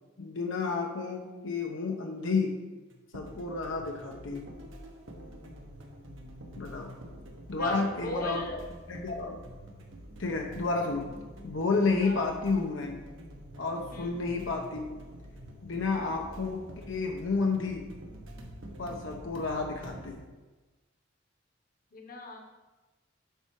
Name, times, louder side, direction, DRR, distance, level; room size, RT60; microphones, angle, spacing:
voice 1, 0.2-2.6 3.1-4.5 6.6-6.9 7.5-8.6 8.9-9.4 10.2-11.1 11.4-13.0 13.6-14.9 15.6-16.6 16.9-17.9 18.8-20.2, left 3 dB, 75° left, 1 dB, 0.8 m, -31 dB
sound 1, 2.9-20.1, equal, 80° right, 1.3 m, -47 dB
voice 2, 7.6-8.6 12.0-12.2 13.9-14.2 21.9-22.4, left 2 dB, 45° left, 2 dB, 1.1 m, -38 dB
8.0 x 5.6 x 4.7 m, 1.2 s
head